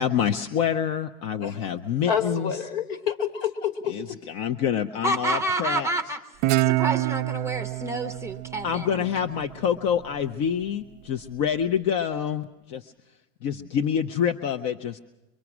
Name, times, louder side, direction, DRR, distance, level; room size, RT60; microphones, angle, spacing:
voice 1, 0.0-2.7 3.9-5.9 8.6-12.9 13.4-15.0, left 8 dB, 40° left, 6 dB, 0.8 m, -27 dB
voice 2, 2.1-4.2, left 8 dB, 65° left, 7 dB, 2.3 m, -28 dB
voice 3, 5.0-9.0, right 2 dB, 5° right, 5 dB, 0.7 m, -29 dB
Guitar, 6.4-9.7, right 18 dB, 45° right, 0.7 m, -26 dB
24.0 x 23.5 x 6.1 m, 1.0 s
supercardioid pair, 150°, 41 cm